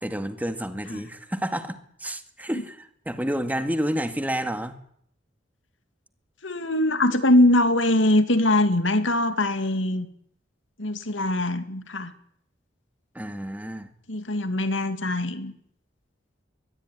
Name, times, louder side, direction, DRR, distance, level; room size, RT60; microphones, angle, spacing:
voice 1, 0.0-4.7 13.1-13.9, equal, 10° right, 8 dB, 2.1 m, -30 dB
voice 2, 6.4-10.1 10.8-12.1 14.1-15.5, left 1 dB, 80° left, 10 dB, 2.4 m, -22 dB
22.5 x 22.0 x 10.0 m, 0.66 s
head